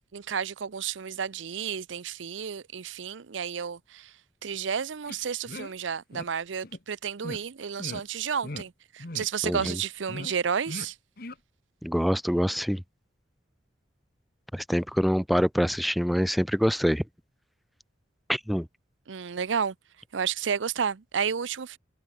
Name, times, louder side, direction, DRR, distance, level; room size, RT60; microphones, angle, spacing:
voice 1, 0.1-4.1 4.4-10.9 19.1-19.7 20.1-21.8, right 7 dB, 80° right, 0.6 m, -31 dB
sound 1, 5.1-5.2 5.5-5.7 6.1-6.3 6.6-6.8 7.2-7.4 7.8-8.0 8.4-8.7 9.0-9.3 9.5-9.7 10.1-10.3 10.7-10.9 11.2-11.4, left 2 dB, 50° left, 1.6 m, -38 dB
voice 2, 9.4-9.8 11.8-12.8 14.5-17.0 18.3-18.7, equal, ahead, 0.5 m, -25 dB
head